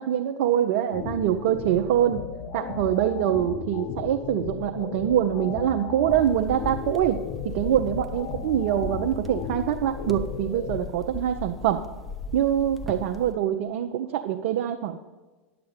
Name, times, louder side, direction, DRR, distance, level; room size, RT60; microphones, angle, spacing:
voice 1, 0.0-2.2 2.5-7.2 7.5-11.8 12.3-15.0, right 10 dB, 60° right, 5 dB, 0.6 m, -24 dB
sound 1, 0.9-10.9, left 8 dB, 45° left, 0.7 m, -36 dB
sound 2, 6.1-13.3, left 2 dB, ahead, 0.7 m, -38 dB
10.5 x 6.9 x 4.9 m, 1.3 s
hypercardioid pair, 90°, 7 cm